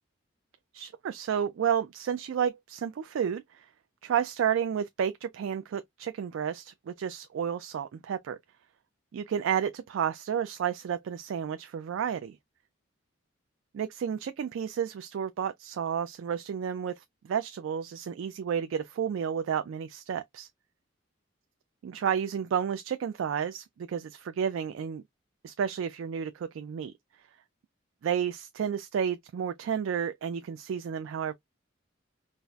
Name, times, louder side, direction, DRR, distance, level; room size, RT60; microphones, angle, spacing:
voice 1, 0.7-3.7 4.0-8.4 9.1-12.4 13.7-20.5 21.8-25.0 25.4-26.9 28.0-31.3, right 8 dB, 75° right, 0.3 m, -31 dB
4.0 x 2.1 x 2.2 m
head